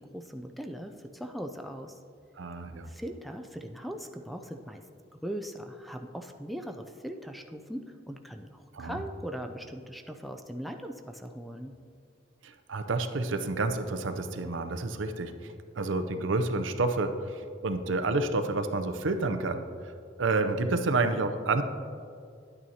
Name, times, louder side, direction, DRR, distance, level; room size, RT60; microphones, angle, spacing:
voice 1, 0.0-2.0 2.9-4.8 5.2-11.7, equal, ahead, 5 dB, 0.4 m, -40 dB
voice 2, 2.4-2.9 8.7-9.0 12.4-15.3 15.8-19.9 20.2-21.6, right 3 dB, 85° right, 8 dB, 0.6 m, -29 dB
10.5 x 9.0 x 2.8 m, 2.3 s
head